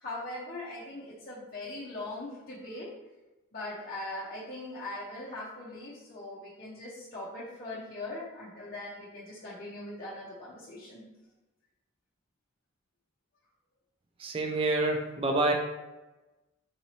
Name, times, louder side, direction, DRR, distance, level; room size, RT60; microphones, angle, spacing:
voice 1, 0.0-2.9 3.5-11.0, left 2 dB, 45° left, -7 dB, 0.6 m, -40 dB
voice 2, 14.2-15.5, right 2 dB, 25° right, 3 dB, 0.3 m, -27 dB
4.0 x 2.6 x 3.0 m, 1.1 s
head